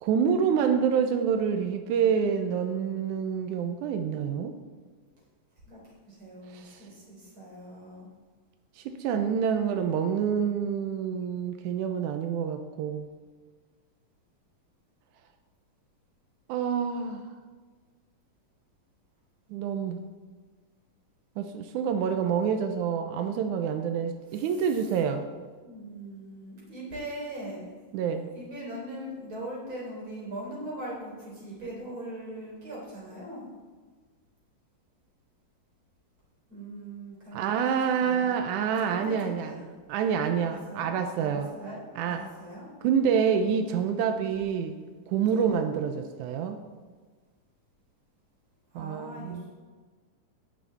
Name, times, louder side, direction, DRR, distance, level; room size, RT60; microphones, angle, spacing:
voice 1, 0.0-4.5 6.5-6.8 8.8-13.1 16.5-17.2 19.5-20.0 21.4-25.3 27.9-28.3 37.3-39.5 39.9-41.5 42.0-42.2 42.8-44.7 45.1-46.6 48.8-49.4, right 7 dB, 85° right, 6 dB, 1.8 m, -27 dB
voice 2, 5.6-8.1 24.3-24.9 25.6-27.7 28.2-33.5 36.5-37.7 38.0-38.3 38.9-39.7 40.3-40.9 41.2-41.8 42.1-42.7 45.3-45.6 48.7-49.4, right 1 dB, 35° right, -4 dB, 4.2 m, -41 dB
18.5 x 6.3 x 3.4 m, 1.4 s
omnidirectional pair, 4.2 m